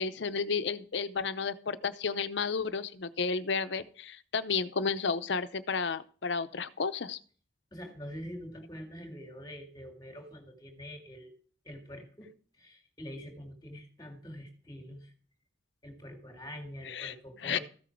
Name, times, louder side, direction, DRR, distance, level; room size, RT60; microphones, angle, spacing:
voice 1, 0.0-7.2 16.8-17.1 17.4-17.6, left 5 dB, 70° left, 13 dB, 0.7 m, -32 dB
voice 2, 7.7-11.3 11.6-12.3 12.6-15.1 15.8-17.6, equal, 20° left, 3 dB, 2.1 m, -45 dB
14.0 x 6.2 x 4.5 m, 0.43 s
head